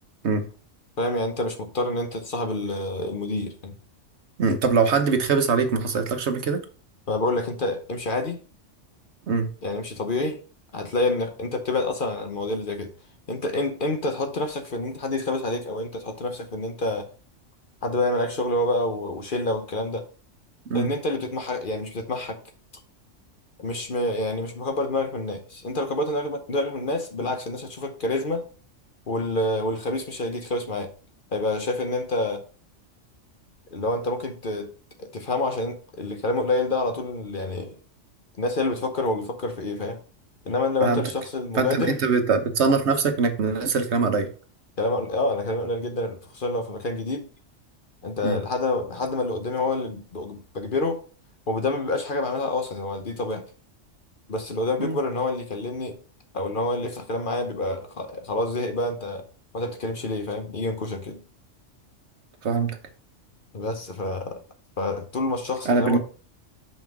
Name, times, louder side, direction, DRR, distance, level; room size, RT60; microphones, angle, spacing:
voice 1, 1.0-3.7 7.1-8.4 9.6-10.4 10.7-12.9 13.3-17.1 17.8-20.0 20.7-22.4 23.6-28.5 29.1-30.9 31.3-32.4 33.7-34.7 35.0-37.8 38.4-40.0 40.4-42.0 44.8-47.3 48.0-51.0 51.5-53.5 54.3-56.0 56.3-59.2 59.5-61.2 63.5-64.4 64.8-66.0, left 2 dB, 45° left, 1.0 m, -27 dB
voice 2, 4.4-6.6 9.3-9.5 20.7-20.9 40.8-41.0 41.5-44.3 48.2-48.4 54.8-55.0 62.4-62.8 65.6-66.0, right 4 dB, 65° right, 1.2 m, -22 dB
5.8 x 5.4 x 4.6 m
omnidirectional pair, 1.3 m